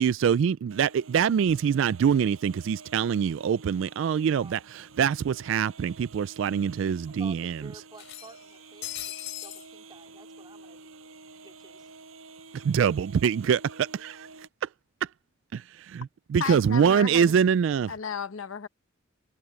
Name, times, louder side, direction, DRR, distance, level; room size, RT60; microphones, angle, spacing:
voice 1, 0.0-7.6 12.5-14.3 15.0-15.1 15.5-15.6 15.9-17.9, right 7 dB, 65° right, 0.3 m, -24 dB
sound 1, 0.7-14.5, right 3 dB, 85° right, 7.9 m, -49 dB
voice 2, 4.2-4.6 7.1-11.1 11.4-11.9, right 2 dB, 20° right, 4.0 m, -51 dB
sound 2, 4.6-4.7 4.9-5.0 6.1-6.2 6.5-6.6 7.9-9.7, left 13 dB, 60° left, 4.9 m, -39 dB
voice 3, 16.4-17.3 17.9-18.7, left 5 dB, 80° left, 0.8 m, -33 dB
head